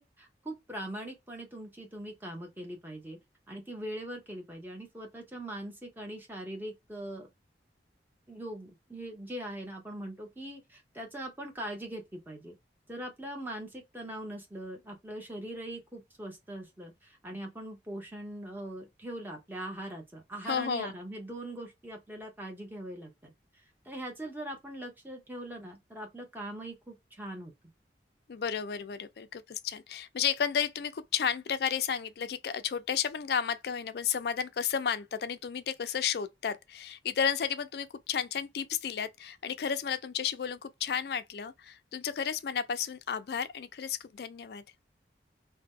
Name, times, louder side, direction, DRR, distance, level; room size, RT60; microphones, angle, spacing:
voice 1, 0.0-3.2 3.5-7.3 8.3-12.5 12.9-23.3 23.8-27.5, right 1 dB, 10° right, 0.8 m, -41 dB
voice 2, 20.4-20.9 28.3-44.6, left 7 dB, 60° left, 0.4 m, -32 dB
2.8 x 2.1 x 3.5 m
head